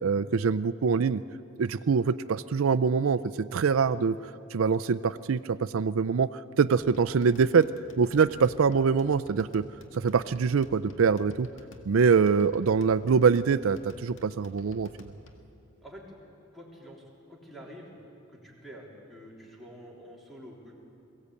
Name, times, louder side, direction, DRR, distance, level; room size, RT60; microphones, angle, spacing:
voice 1, 0.0-1.2 1.6-4.2 4.5-7.7 8.0-9.7 9.9-11.5 11.9-14.9, right 5 dB, 85° right, 14 dB, 0.4 m, -24 dB
sound 1, 6.8-15.5, left 1 dB, 70° left, 1.8 m, -52 dB
voice 2, 15.8-16.2 16.5-17.9 18.3-20.8, equal, ahead, -4 dB, 3.7 m, -47 dB
22.0 x 16.5 x 8.4 m, 2.7 s
head